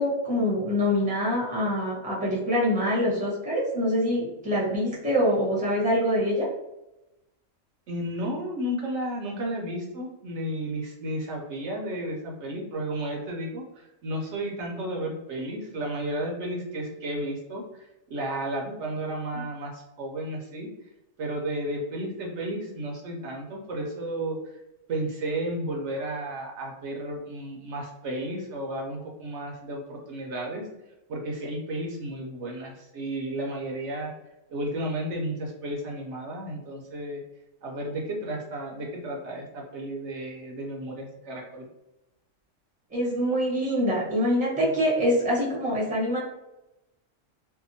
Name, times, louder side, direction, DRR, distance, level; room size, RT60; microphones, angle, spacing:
voice 1, 0.0-6.5 42.9-46.2, equal, 10° right, -6 dB, 0.6 m, -25 dB
voice 2, 7.9-20.7 21.2-24.4 24.9-30.6 31.1-34.1 34.5-37.2 37.6-41.7, right 1 dB, 70° right, 0 dB, 0.8 m, -33 dB
2.7 x 2.1 x 2.6 m, 0.95 s
omnidirectional pair, 1.3 m